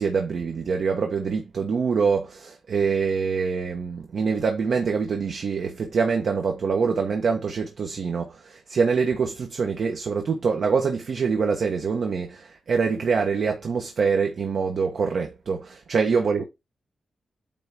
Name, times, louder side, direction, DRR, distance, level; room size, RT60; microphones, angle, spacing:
voice 1, 0.0-16.4, right 5 dB, 60° right, 1.2 m, -25 dB
9.1 x 3.5 x 4.4 m
wide cardioid pair, 110°, 0 cm